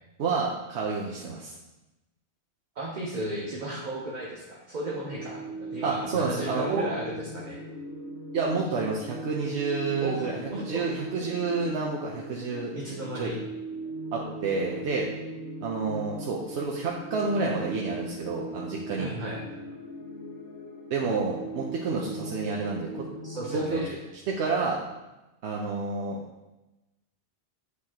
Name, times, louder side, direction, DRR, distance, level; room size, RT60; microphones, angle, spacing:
voice 1, 0.2-1.5 5.8-6.9 8.3-12.7 13.2-13.3 14.1-15.1 15.6-19.1 20.9-23.1 23.5-23.8 24.3-24.8 25.4-26.2, right 4 dB, 80° right, -2 dB, 1.0 m, -29 dB
voice 2, 2.8-5.4 5.7-7.6 10.0-10.9 11.2-11.3 12.7-13.4 19.0-19.4 23.2-23.9, right 1 dB, 45° right, -3 dB, 0.9 m, -35 dB
sound 1, 4.9-23.9, right 1 dB, 90° left, 1.1 m, -39 dB
8.3 x 4.7 x 2.9 m, 1.0 s
omnidirectional pair, 1.1 m